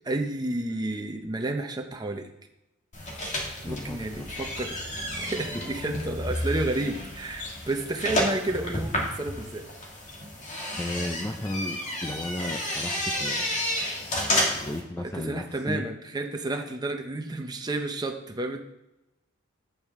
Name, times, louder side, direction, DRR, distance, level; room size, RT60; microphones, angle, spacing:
voice 1, 0.0-2.3 3.6-9.7 15.0-18.6, right 2 dB, 20° right, 3 dB, 0.7 m, -31 dB
sound 1, 2.9-14.8, left 1 dB, 35° left, 1.9 m, -31 dB
voice 2, 3.6-4.3 10.8-13.5 14.6-15.8, left 1 dB, 15° left, 5 dB, 0.4 m, -34 dB
9.5 x 8.5 x 3.6 m, 0.92 s
head